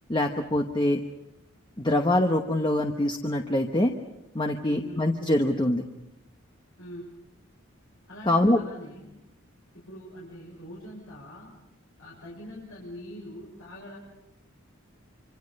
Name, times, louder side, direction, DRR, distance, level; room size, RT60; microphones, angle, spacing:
voice 1, 0.1-1.0 1.8-3.9 4.3-5.8 8.3-8.6, left 1 dB, 20° left, 4 dB, 1.1 m, -24 dB
voice 2, 4.7-5.0 6.8-7.2 8.1-9.1 9.7-11.5 12.0-14.0, equal, 70° left, -4 dB, 6.1 m, -43 dB
26.0 x 26.0 x 5.4 m, 0.93 s
head